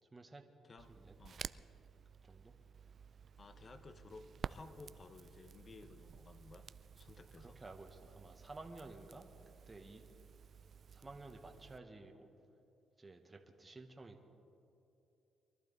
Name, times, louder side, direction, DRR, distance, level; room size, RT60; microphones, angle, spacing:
voice 1, 0.0-0.4 0.9-1.1 2.2-2.5 7.4-9.3 9.7-10.0 10.9-12.3 13.0-14.3, right 2 dB, 20° right, 4 dB, 1.2 m, -53 dB
Crackle, 0.8-11.8, right 7 dB, 50° right, 0.3 m, -53 dB
voice 2, 1.2-1.5 3.4-6.7 7.0-7.6, left 3 dB, 35° left, 10 dB, 1.0 m, -56 dB
23.0 x 11.5 x 4.0 m, 2.8 s
cardioid pair, 90°, 0 cm